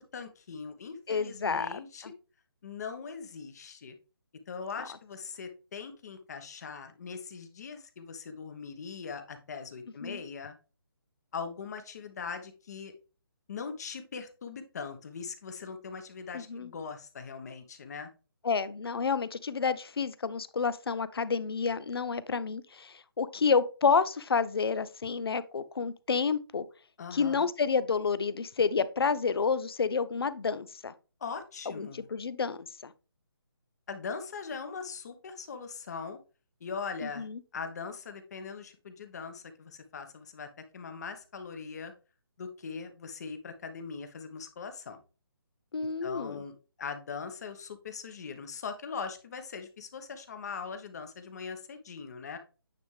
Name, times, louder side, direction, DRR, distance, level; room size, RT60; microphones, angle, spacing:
voice 1, 0.1-2.1 2.6-3.9 4.5-10.6 11.3-12.9 13.5-18.1 27.0-27.5 31.2-32.1 33.9-36.2 36.6-40.5 40.7-41.9 42.4-45.0 46.0-52.4, left 5 dB, 40° left, 1.1 m, -41 dB
voice 2, 1.1-1.7 2.0-2.1 10.0-10.2 16.3-16.7 18.4-26.6 27.1-30.9 31.8-32.9 37.2-37.4 45.7-46.4, left 5 dB, 75° left, 0.6 m, -29 dB
9.2 x 3.5 x 3.3 m
hypercardioid pair, 160°, 13 cm